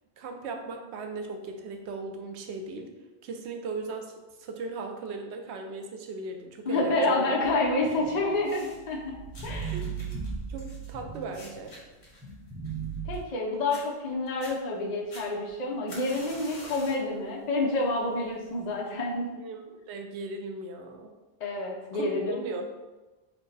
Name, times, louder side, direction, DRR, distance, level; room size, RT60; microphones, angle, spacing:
voice 1, 0.2-2.9 3.2-4.1 4.4-7.3 9.6-10.1 10.5-11.7 19.4-21.1 21.9-22.6, right 3 dB, 80° right, 4 dB, 0.9 m, -37 dB
voice 2, 6.6-9.2 9.4-9.8 13.1-19.3 21.4-22.4, left 2 dB, 50° left, -2 dB, 0.6 m, -28 dB
sound 1, 7.4-11.7 12.2-13.2, right 6 dB, 10° right, 0.7 m, -37 dB
sound 2, 8.3-8.9 9.3-13.4 13.7-13.8 14.3-14.5 15.1-17.1 17.5-17.9 18.7-18.8, left 2 dB, 75° left, 1.3 m, -48 dB
4.3 x 2.1 x 4.0 m, 1.2 s
omnidirectional pair, 1.1 m